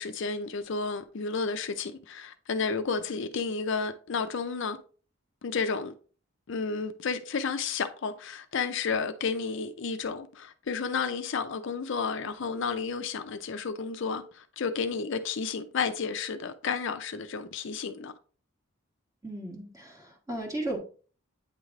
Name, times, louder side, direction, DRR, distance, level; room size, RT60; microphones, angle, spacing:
voice 1, 0.0-4.8 5.4-5.9 6.5-18.1, left 5 dB, 60° left, 0.5 m, -32 dB
voice 2, 19.2-20.8, right 1 dB, 15° right, 1.5 m, -35 dB
8.8 x 3.2 x 3.6 m
head